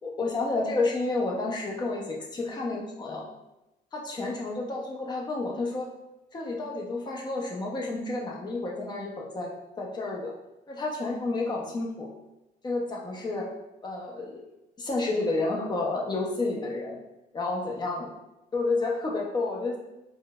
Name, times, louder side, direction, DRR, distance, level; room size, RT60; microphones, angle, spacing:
voice 1, 0.0-3.2 3.9-5.9 6.3-9.5 9.8-10.3 10.7-12.1 12.6-13.5 13.8-14.4 14.8-17.0 17.3-18.1 18.5-19.8, left 3 dB, 25° left, -2 dB, 0.7 m, -30 dB
4.5 x 2.1 x 2.3 m, 0.94 s
cardioid pair, 110°, 17 cm